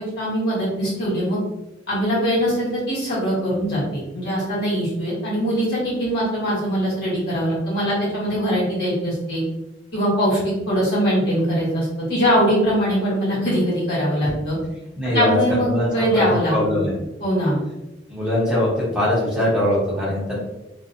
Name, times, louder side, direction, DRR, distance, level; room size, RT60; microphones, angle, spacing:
voice 1, 0.2-1.4 1.9-3.8 4.1-9.4 9.9-14.6 15.1-16.9 17.2-17.6, equal, 60° left, -7 dB, 1.3 m, -22 dB
voice 2, 15.0-16.9 18.1-20.4, left 1 dB, 5° right, -8 dB, 0.8 m, -22 dB
2.4 x 2.3 x 2.6 m, 0.97 s
head